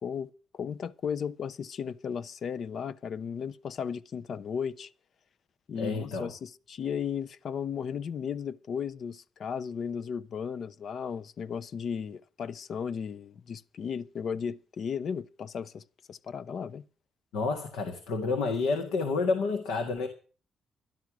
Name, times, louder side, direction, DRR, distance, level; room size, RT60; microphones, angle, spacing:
voice 1, 0.0-4.9 5.7-15.8 16.1-16.8, left 7 dB, 65° left, 0.6 m, -35 dB
voice 2, 5.8-6.3 17.3-20.1, left 4 dB, 90° left, 1.8 m, -29 dB
12.0 x 11.5 x 6.1 m
supercardioid pair, 65°, 0 cm